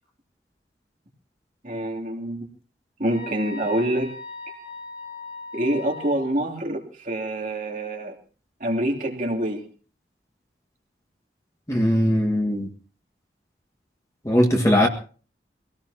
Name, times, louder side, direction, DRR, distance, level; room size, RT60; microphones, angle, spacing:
voice 1, 1.6-2.5 3.0-4.1 5.5-8.1 8.6-9.6, right 1 dB, 45° right, 0 dB, 3.0 m, -26 dB
sound 1, 3.1-6.4, left 3 dB, 80° left, 4.2 m, -39 dB
voice 2, 11.7-12.7 14.2-14.9, equal, 15° left, 0 dB, 1.8 m, -19 dB
24.0 x 18.0 x 2.9 m, 0.39 s
head